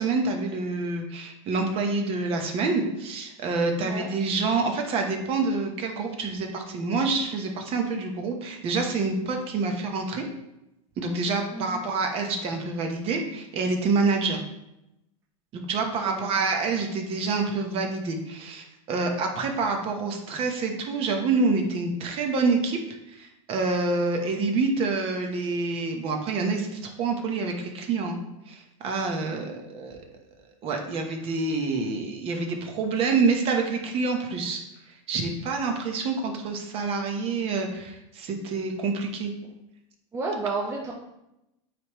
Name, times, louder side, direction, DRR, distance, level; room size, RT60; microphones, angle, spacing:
voice 1, 0.0-10.2 11.0-14.4 15.5-22.8 23.1-30.0 30.6-34.6 35.1-39.3, right 4 dB, 35° right, 3 dB, 1.0 m, -27 dB
voice 2, 3.8-4.1 11.5-11.8 15.8-16.4 40.1-40.9, right 3 dB, 15° right, -2 dB, 0.7 m, -32 dB
9.2 x 3.4 x 3.1 m, 0.88 s
supercardioid pair, 140°, 17 cm